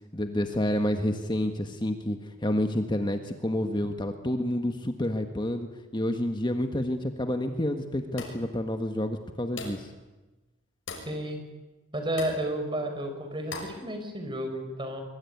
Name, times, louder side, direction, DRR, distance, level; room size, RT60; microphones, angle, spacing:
voice 1, 0.1-9.9, left 1 dB, 25° left, 6 dB, 1.5 m, -29 dB
sound 1, 8.2-8.5 9.6-9.9 10.9-11.2 12.2-12.5 13.5-13.8, left 3 dB, 90° left, 6.6 m, -39 dB
voice 2, 11.0-11.4 11.9-15.0, right 1 dB, 25° right, 6 dB, 5.0 m, -32 dB
24.0 x 23.5 x 9.6 m, 1.1 s
head